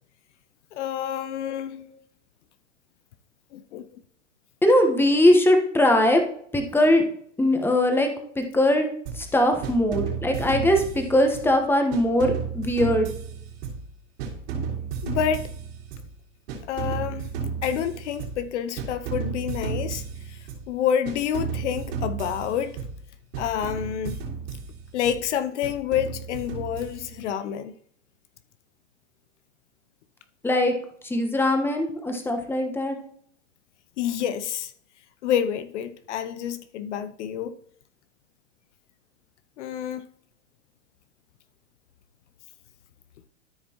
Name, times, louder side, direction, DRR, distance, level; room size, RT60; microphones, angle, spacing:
voice 1, 0.7-1.9 3.5-3.9 15.0-15.5 16.7-17.3 17.6-20.4 20.7-22.8 23.4-24.2 24.9-27.8 34.0-34.7 35.2-37.5 39.6-40.0, left 9 dB, 65° left, 0.7 m, -28 dB
voice 2, 1.4-1.8 4.6-6.2 6.5-7.0 7.4-8.1 8.4-8.9 9.1-13.1 30.4-30.8 31.0-33.0, left 1 dB, 5° left, 1.2 m, -21 dB
sound 1, 9.1-9.3 9.6-11.6 11.9-13.9 14.2-16.1 16.5-18.5 18.8-20.7 21.1-23.1 23.3-25.2 25.6-27.3, right 6 dB, 60° right, 3.4 m, -33 dB
13.5 x 5.1 x 3.0 m
hypercardioid pair, 120°, 38 cm